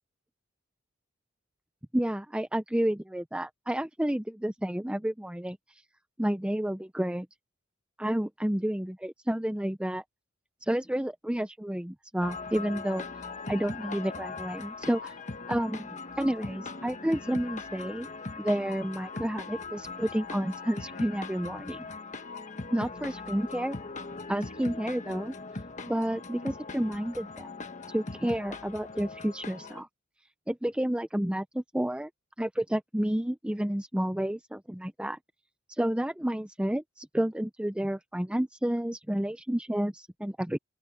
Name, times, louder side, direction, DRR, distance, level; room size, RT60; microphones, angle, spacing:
voice 1, 1.9-5.6 6.2-7.3 8.0-10.0 10.6-13.0 13.5-15.1 15.5-15.9 16.2-18.1 18.4-21.9 22.7-23.8 24.3-25.3 25.9-27.5 27.9-29.9 30.5-32.1 32.4-35.2 35.8-40.6, right 1 dB, 5° right, 0.5 m, -30 dB
sound 1, 12.2-29.8, left 3 dB, 35° left, 1.3 m, -40 dB
open air
head